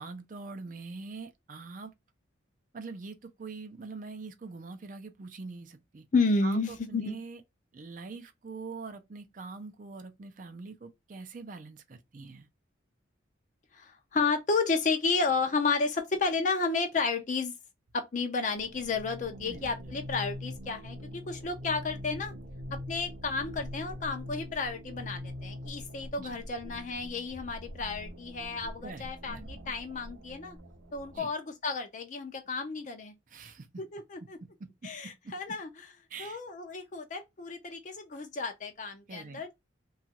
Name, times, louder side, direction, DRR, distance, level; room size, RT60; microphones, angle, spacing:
voice 1, 0.0-1.9 2.7-6.0 6.4-7.4 7.7-12.5 19.5-19.7 26.2-26.4 28.8-29.4 31.1-31.3 33.3-33.7 34.6-34.9 35.2-35.3 36.1-36.4 39.1-39.4, right 4 dB, 40° right, 0.4 m, -43 dB
voice 2, 6.1-7.2 13.7-17.5 17.9-22.4 22.7-30.6 30.9-33.1 33.8-34.4 34.8-35.9 36.2-39.5, left 4 dB, 40° left, 0.4 m, -32 dB
sound 1, 18.5-31.2, left 1 dB, 80° right, 0.6 m, -43 dB
2.9 x 2.3 x 2.8 m
head